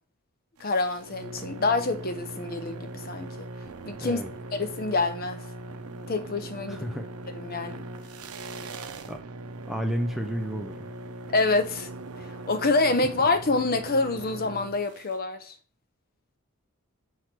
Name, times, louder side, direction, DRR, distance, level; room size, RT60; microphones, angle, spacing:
voice 1, 0.6-3.3 3.8-4.2 4.5-5.4 6.1-6.9 7.3-7.8 11.3-11.9 12.5-15.5, left 3 dB, 40° left, 0.8 m, -26 dB
sound 1, 0.6-15.2, right 2 dB, 80° right, 0.7 m, -40 dB
voice 2, 6.7-7.1 9.1-9.2 9.7-10.9, equal, ahead, 0.5 m, -31 dB
7.6 x 3.3 x 5.9 m
head